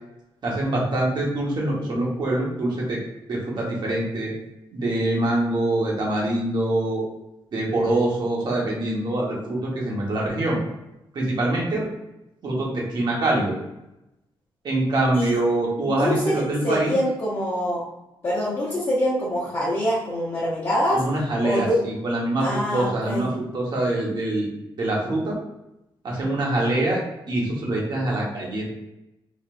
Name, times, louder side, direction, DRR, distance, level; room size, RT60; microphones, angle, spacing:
voice 1, 0.4-3.0 3.3-4.3 4.7-7.0 7.5-10.6 11.1-11.9 12.4-13.5 14.6-16.9 20.9-24.5 24.8-25.4 26.0-27.0 27.3-28.6, right 1 dB, 50° right, -3 dB, 1.3 m, -24 dB
voice 2, 15.9-17.8 18.2-21.0 21.4-21.8 22.4-23.3, equal, 35° left, -8 dB, 0.9 m, -25 dB
4.1 x 3.2 x 2.5 m, 0.91 s
wide cardioid pair, 175°, 9 cm